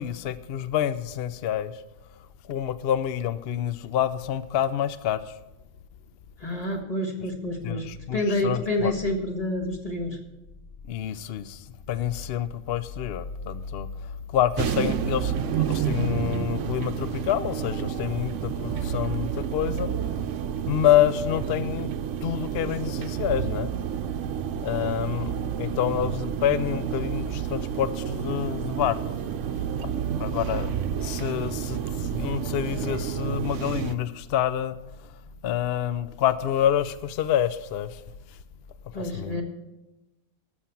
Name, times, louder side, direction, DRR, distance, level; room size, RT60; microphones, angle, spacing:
voice 1, 0.0-1.8 2.5-5.3 7.6-8.9 10.9-13.9 14.3-19.9 20.7-21.9 22.2-23.7 24.6-29.0 29.8-29.9 30.2-30.7 31.0-34.7 35.4-38.0 38.9-39.4, left 10 dB, 60° left, 0.7 m, -27 dB
voice 2, 6.4-7.9 8.1-10.2 38.9-39.4, left 1 dB, 30° left, 1.6 m, -28 dB
sound 1, 14.6-34.0, right 8 dB, 70° right, 0.9 m, -30 dB
13.5 x 6.6 x 7.1 m
omnidirectional pair, 1.4 m